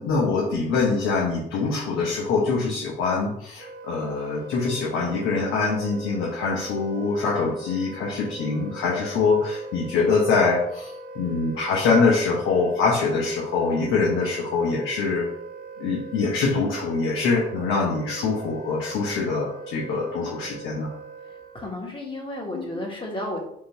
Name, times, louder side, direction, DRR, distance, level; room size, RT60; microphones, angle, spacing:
voice 1, 0.0-15.3 15.8-20.9 22.5-22.6, left 4 dB, 90° left, -3 dB, 0.9 m, -24 dB
Wind instrument woodwind instrument, 3.6-21.8, right 3 dB, 45° right, 1.3 m, -41 dB
voice 2, 21.2-23.4, left 1 dB, 25° left, -1 dB, 1.4 m, -33 dB
3.6 x 2.6 x 4.5 m, 0.76 s
cardioid pair, 90°, 20 cm